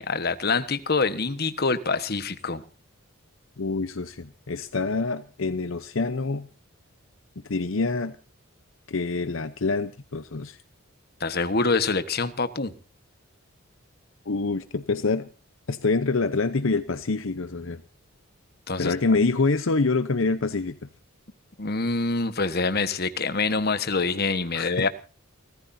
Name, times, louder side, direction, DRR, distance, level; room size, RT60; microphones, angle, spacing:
voice 1, 0.0-2.6 11.2-12.7 18.7-18.9 21.6-24.9, left 4 dB, 45° left, 12 dB, 1.3 m, -25 dB
voice 2, 3.6-6.5 7.5-8.2 8.9-10.6 14.3-15.3 15.7-17.8 18.8-20.8 24.5-24.9, left 3 dB, 65° left, 12 dB, 0.8 m, -26 dB
29.5 x 14.5 x 2.7 m, 0.35 s
head